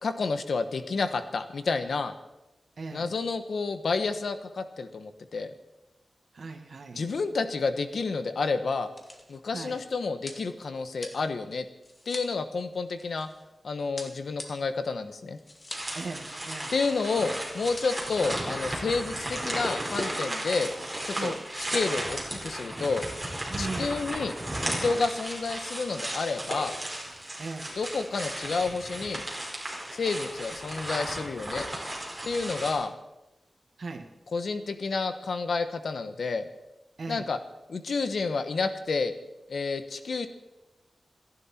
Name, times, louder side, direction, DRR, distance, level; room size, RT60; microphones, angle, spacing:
voice 1, 0.0-2.1 2.9-5.5 6.9-8.9 9.3-11.7 12.0-13.3 13.6-15.4 16.7-20.7 21.0-23.0 23.6-24.3 24.7-26.8 27.8-29.2 29.9-31.7 32.3-32.9 34.3-36.5 37.1-37.4 37.7-39.1 39.5-40.3, left 4 dB, 85° left, 9 dB, 1.3 m, -30 dB
voice 2, 2.8-3.1 6.3-7.0 9.5-9.8 15.9-16.7 21.2-21.4 23.5-23.9 27.4-27.7 33.8-34.1 37.0-37.2, right 3 dB, 70° right, 5 dB, 1.9 m, -37 dB
sound 1, 7.5-7.6 8.4-13.5 14.0-16.0 16.3-16.4 16.6-17.1 17.5-18.1, left 1 dB, 30° left, 2.2 m, -45 dB
sound 2, 15.7-32.7, right 1 dB, 15° right, 4.9 m, -35 dB
28.0 x 11.0 x 4.5 m, 0.99 s
wide cardioid pair, 110°, 0 cm